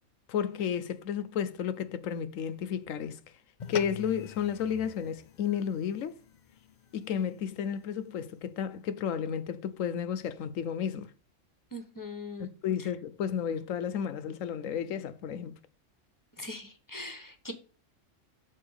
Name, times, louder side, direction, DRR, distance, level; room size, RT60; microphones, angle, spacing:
voice 1, 0.3-3.2 3.7-6.2 6.9-11.1 12.4-15.6, left 8 dB, 80° left, 1.1 m, -32 dB
sound 1, 3.6-8.2, left 7 dB, 55° left, 0.5 m, -45 dB
voice 2, 11.7-12.5 12.8-12.9 16.4-17.5, left 2 dB, 15° left, 1.0 m, -41 dB
6.7 x 4.1 x 6.3 m
omnidirectional pair, 1.4 m